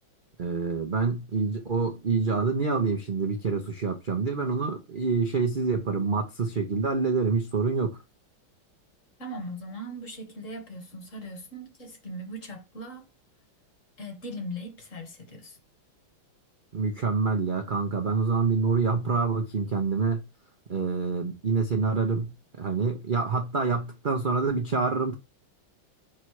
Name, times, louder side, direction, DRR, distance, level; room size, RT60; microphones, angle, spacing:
voice 1, 0.4-8.0 16.7-20.2 20.7-25.1, right 4 dB, 65° right, 0.5 m, -26 dB
voice 2, 9.2-13.1 14.0-15.6, equal, 40° left, 1.8 m, -39 dB
5.6 x 3.7 x 4.7 m
omnidirectional pair, 2.2 m